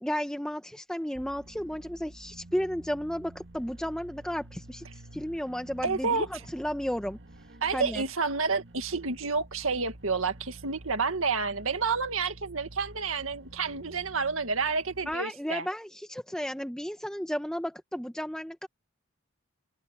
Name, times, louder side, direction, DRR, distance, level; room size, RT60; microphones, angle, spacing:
voice 1, 0.0-4.8 5.1-7.2 7.7-8.1 15.1-18.7, equal, 5° left, 1.0 m, -33 dB
sound 1, 1.1-15.2, right 1 dB, 60° right, 1.8 m, -49 dB
voice 2, 5.8-6.4 7.6-15.7, right 4 dB, 80° right, 2.0 m, -29 dB
open air
head